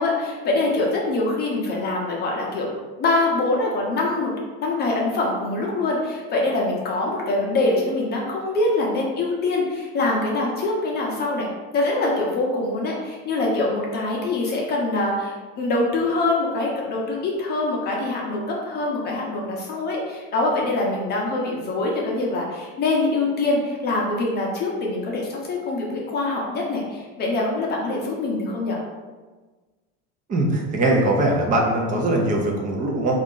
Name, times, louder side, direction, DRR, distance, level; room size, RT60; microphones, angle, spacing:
voice 1, 0.0-2.7 3.0-4.3 4.6-11.5 11.7-28.8, left 2 dB, 30° left, -2 dB, 0.7 m, -24 dB
voice 2, 30.3-33.2, right 1 dB, 25° right, 0 dB, 0.6 m, -21 dB
3.8 x 2.5 x 3.7 m, 1.3 s
cardioid pair, 150°, 31 cm